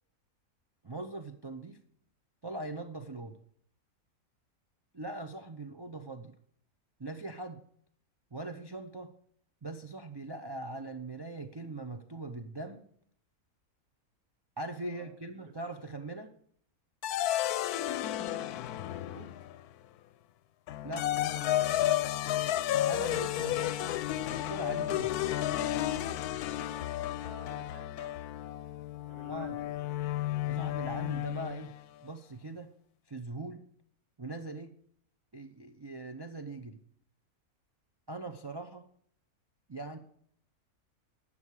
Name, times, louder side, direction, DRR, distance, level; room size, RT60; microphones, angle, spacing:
voice 1, 0.8-1.8 2.4-3.3 4.9-6.3 7.0-7.6 8.3-9.1 9.6-12.8 14.6-16.3 20.8-21.1 22.9-23.9 24.3-25.1 29.3-29.6 30.5-31.7 32.0-32.7 33.1-33.6 34.2-34.7 35.3-36.8 38.1-38.9 39.7-40.0, right 2 dB, 25° right, 5 dB, 0.5 m, -41 dB
sound 1, 17.0-19.6 20.7-31.8, left 13 dB, 85° left, 1.1 m, -32 dB
voice 2, 17.7-19.5 23.3-23.6 26.1-28.3 29.1-29.8, right 3 dB, 85° right, 5 dB, 2.1 m, -55 dB
12.5 x 8.5 x 4.8 m, 0.64 s
omnidirectional pair, 1.6 m